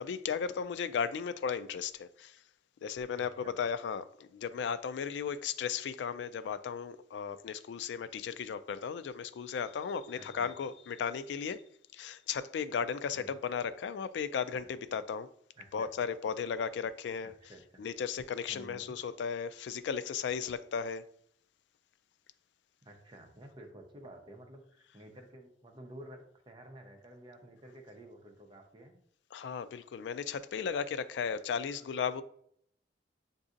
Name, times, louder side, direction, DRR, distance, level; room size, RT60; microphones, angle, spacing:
voice 1, 0.0-2.4 2.8-11.6 11.9-15.3 15.7-17.3 17.8-21.0 29.3-32.2, left 6 dB, 80° left, 0.3 m, -35 dB
voice 2, 3.1-3.6 10.1-10.5 13.1-13.3 15.6-15.9 17.4-17.8 18.5-19.0 22.9-29.0, right 1 dB, 25° right, 0.7 m, -52 dB
6.9 x 2.6 x 2.5 m
head